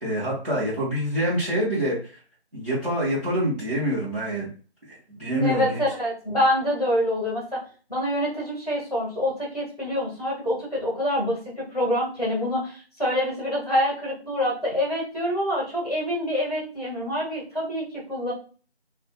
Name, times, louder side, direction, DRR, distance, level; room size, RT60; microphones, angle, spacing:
voice 1, 0.0-2.0 2.5-4.5 4.9-5.8, equal, 40° right, -12 dB, 1.2 m, -26 dB
voice 2, 5.4-7.6 7.9-18.3, left 1 dB, 35° left, -5 dB, 1.0 m, -26 dB
2.5 x 2.5 x 2.3 m, 0.37 s
figure-of-eight pair, 175°, 33 cm